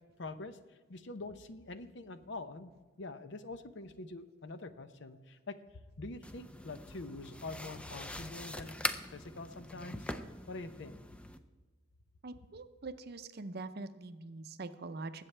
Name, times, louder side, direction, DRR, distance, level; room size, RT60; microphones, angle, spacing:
voice 1, 0.2-5.6 6.0-8.8 9.1-10.1 10.5-11.0, left 2 dB, 60° left, 11 dB, 0.7 m, -45 dB
sound 1, 6.2-11.4, left 1 dB, 5° left, 0.4 m, -42 dB
voice 2, 12.2-15.3, right 3 dB, 50° right, 11 dB, 0.6 m, -44 dB
20.0 x 8.2 x 3.3 m, 1.4 s
head